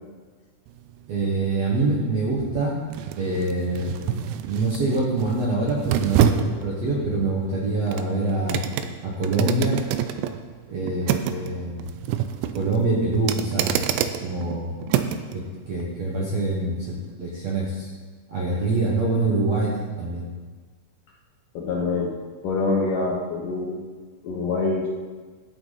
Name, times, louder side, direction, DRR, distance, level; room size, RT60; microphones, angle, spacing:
sound 1, 0.7-15.4 15.8-15.9, right 10 dB, 85° right, 2.8 m, -28 dB
voice 1, 1.1-2.8 3.2-8.6 9.0-9.8 10.7-11.9 12.5-13.8 14.2-14.7 15.3-16.8 17.2-17.9 18.3-20.2, right 2 dB, 60° right, -5 dB, 1.8 m, -25 dB
voice 2, 21.5-22.2 22.4-23.9 24.2-24.9, left 3 dB, 70° left, -2 dB, 2.2 m, -25 dB
13.0 x 8.8 x 4.0 m, 1.4 s
omnidirectional pair, 4.9 m